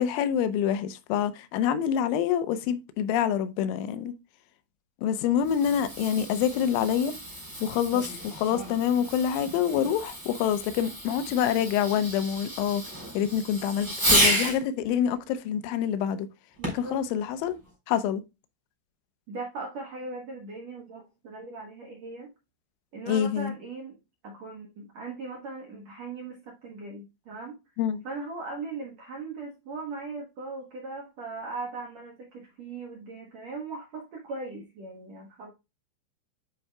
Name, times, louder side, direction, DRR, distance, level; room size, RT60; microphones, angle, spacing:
voice 1, 0.0-4.1 5.0-7.1 7.6-12.8 13.1-16.3 16.7-17.6 17.9-18.2 23.1-23.5 27.8-28.0, left 9 dB, 85° left, 3.2 m, -26 dB
Fireworks, 5.3-14.6 16.6-17.0 17.7-17.8, equal, 5° right, 2.6 m, -31 dB
voice 2, 16.6-17.0 19.3-22.3 22.9-24.0 24.2-27.6 28.0-35.5, right 3 dB, 65° right, 1.7 m, -39 dB
10.5 x 4.8 x 2.2 m
omnidirectional pair, 5.4 m